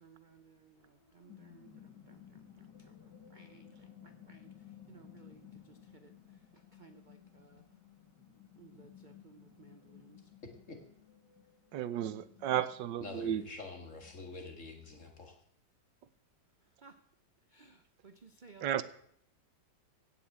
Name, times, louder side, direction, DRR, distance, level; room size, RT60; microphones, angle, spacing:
voice 1, 0.0-0.4 1.2-1.7 3.3-3.6 4.3-4.5 4.9-5.4 6.0-6.1 6.8-7.5 8.6-10.2 12.5-12.6 16.8-16.9 17.5-17.7 18.0-18.8, right 5 dB, 50° right, 0.6 m, -57 dB
sound 1, 0.8-15.1, left 9 dB, 80° left, 3.3 m, -57 dB
voice 2, 10.4-10.8 13.0-15.4, left 3 dB, 45° left, 2.4 m, -46 dB
voice 3, 11.7-13.4 18.6-18.8, right 11 dB, 90° right, 1.5 m, -33 dB
16.0 x 5.9 x 8.6 m
omnidirectional pair, 1.9 m